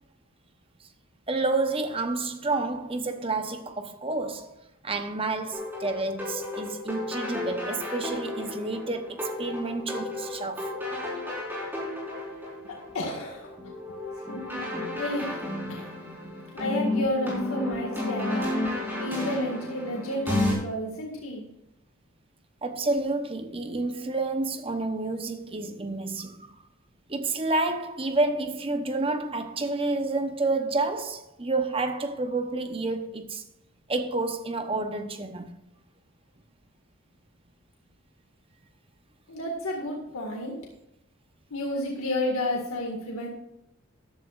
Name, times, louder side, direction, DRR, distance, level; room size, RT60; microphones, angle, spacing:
voice 1, 1.3-4.6 4.8-10.7 22.6-26.6 27.1-33.4 33.9-35.6, right 3 dB, 25° right, 0.9 m, -29 dB
sound 1, 5.5-20.5, left 1 dB, 10° right, 4.5 m, -32 dB
voice 2, 12.6-13.5 14.3-14.6 15.0-15.4 15.7-15.9 16.5-18.4 19.0-21.4 39.3-40.6 41.5-43.3, left 1 dB, 80° left, 2.0 m, -31 dB
14.0 x 11.0 x 2.5 m
head